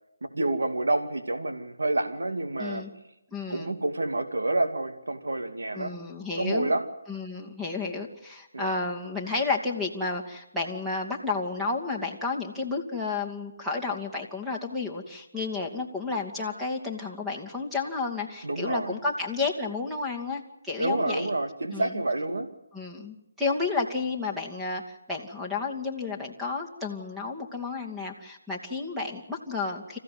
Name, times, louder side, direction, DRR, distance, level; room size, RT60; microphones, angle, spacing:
voice 1, 0.3-2.9 3.5-6.0 6.4-6.8 8.5-8.8 18.4-19.0 20.8-22.5, right 2 dB, 90° right, 7 dB, 2.4 m, -28 dB
voice 2, 2.6-2.9 3.3-3.7 5.7-6.7 7.1-21.3 21.7-21.9 22.7-30.0, left 4 dB, 5° right, 0 dB, 2.4 m, -31 dB
27.5 x 15.0 x 9.5 m, 0.93 s
hypercardioid pair, 160°, 0 cm